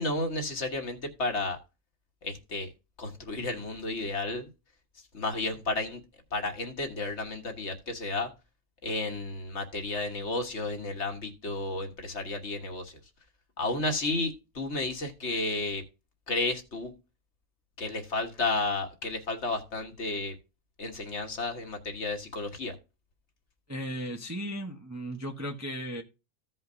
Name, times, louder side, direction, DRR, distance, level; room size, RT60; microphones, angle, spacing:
voice 1, 0.0-1.6 2.2-2.7 3.0-4.5 5.1-6.0 6.3-8.3 8.8-12.9 13.6-15.8 16.3-16.9 17.8-20.3 20.8-22.8, left 2 dB, 50° left, 1.7 m, -32 dB
voice 2, 23.7-26.0, equal, 15° right, 0.7 m, -36 dB
15.5 x 5.5 x 2.6 m
omnidirectional pair, 1.5 m